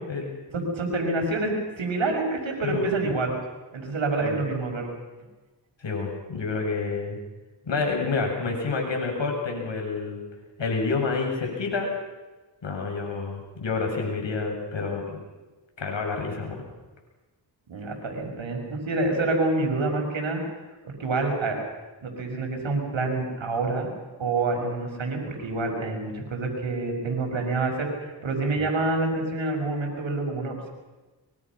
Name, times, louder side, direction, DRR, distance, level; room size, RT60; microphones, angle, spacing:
voice 1, 0.0-0.4 2.6-2.8 4.2-4.4 5.8-7.2 7.6-10.2 10.6-11.9 12.6-15.2 15.8-16.6, left 4 dB, 75° left, 1 dB, 7.6 m, -28 dB
voice 2, 0.5-3.4 3.7-4.9 17.7-20.4 21.0-21.6 22.0-23.9 24.2-30.7, right 2 dB, 85° right, 2 dB, 6.2 m, -27 dB
24.5 x 24.0 x 6.2 m, 1.2 s
cardioid pair, 55°, 45 cm